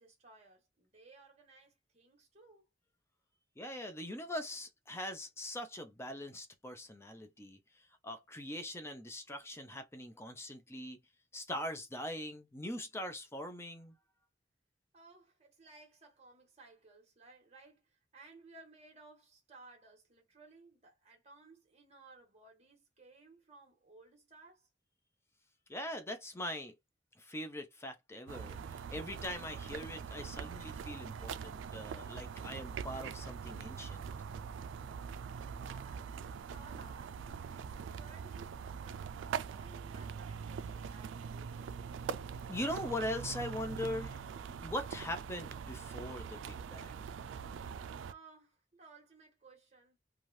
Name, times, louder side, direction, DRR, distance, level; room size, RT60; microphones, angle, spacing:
voice 1, 0.0-2.7 14.9-24.7 34.7-37.2 37.5-39.2 39.5-41.6 48.1-50.0, right 3 dB, 35° right, 1.5 m, -59 dB
voice 2, 3.6-11.0 11.3-14.0 25.7-26.7 27.2-34.1 42.1-44.3 44.6-47.0, left 1 dB, 15° left, 0.5 m, -42 dB
sound 1, 28.3-48.1, right 6 dB, 90° right, 0.3 m, -43 dB
3.2 x 2.4 x 2.6 m
head